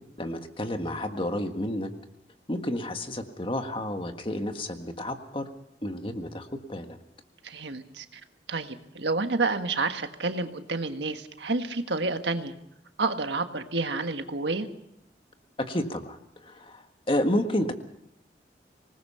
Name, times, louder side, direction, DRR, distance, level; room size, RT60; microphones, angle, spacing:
voice 1, 0.2-1.9 2.5-5.5 5.8-7.0 15.7-17.7, left 1 dB, 30° left, 6 dB, 1.6 m, -30 dB
voice 2, 7.4-8.2 8.5-12.5 13.0-14.7, right 3 dB, 85° right, 7 dB, 1.5 m, -29 dB
25.5 x 19.5 x 5.7 m, 0.76 s
head